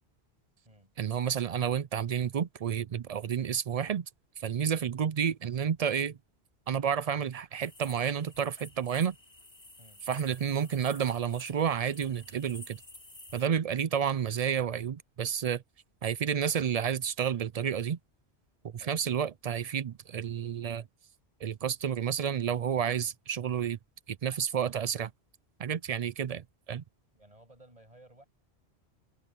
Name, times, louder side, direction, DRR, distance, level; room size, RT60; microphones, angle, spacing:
voice 1, 1.0-4.1 4.4-6.2 6.7-9.2 10.1-12.8 13.3-15.6 16.0-18.0 18.9-20.8 21.4-23.8 24.1-25.1 25.6-26.8, right 8 dB, 55° right, 0.4 m, -30 dB
sound 1, 7.6-13.4, left 1 dB, 35° left, 4.5 m, -51 dB
voice 2, 27.1-28.2, right 1 dB, 35° right, 8.3 m, -57 dB
omnidirectional pair, 1.1 m